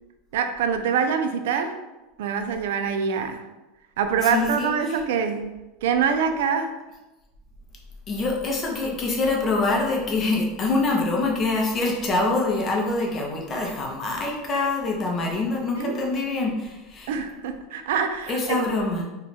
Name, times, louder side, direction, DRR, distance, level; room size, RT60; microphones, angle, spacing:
voice 1, 0.3-1.8 2.2-3.5 4.0-5.5 5.8-6.7 15.8-16.0 17.1-18.7, right 6 dB, 80° right, 7 dB, 0.4 m, -25 dB
voice 2, 4.2-4.7 8.1-17.1 18.3-19.0, left 3 dB, 20° left, 0 dB, 0.6 m, -25 dB
2.9 x 2.3 x 4.1 m, 1.1 s
supercardioid pair, 170°, 0 cm